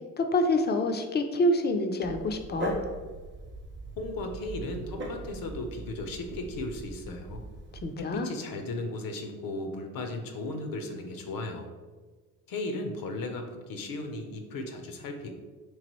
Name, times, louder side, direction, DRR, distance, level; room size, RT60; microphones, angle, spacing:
voice 1, 0.2-2.8 7.8-8.3, left 1 dB, 30° left, 6 dB, 0.4 m, -27 dB
Dog, 2.0-7.9, right 1 dB, 30° right, 0.8 m, -40 dB
voice 2, 4.0-7.4 8.0-11.7 12.5-15.3, left 2 dB, 65° left, 4 dB, 0.7 m, -36 dB
3.5 x 3.1 x 3.0 m, 1.4 s
supercardioid pair, 70°, 37 cm